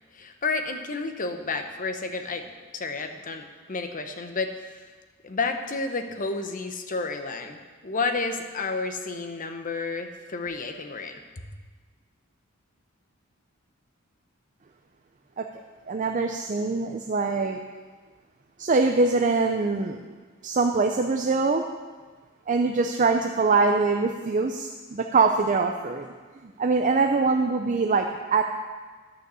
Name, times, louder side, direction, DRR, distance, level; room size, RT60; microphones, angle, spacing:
voice 1, 0.1-4.8 5.2-11.2, left 3 dB, 40° left, 6 dB, 0.9 m, -31 dB
voice 2, 15.9-17.6 18.6-20.0 20.4-21.6 22.5-26.1 26.4-28.4, right 4 dB, 40° right, 4 dB, 0.5 m, -23 dB
11.0 x 6.6 x 6.9 m, 1.4 s
head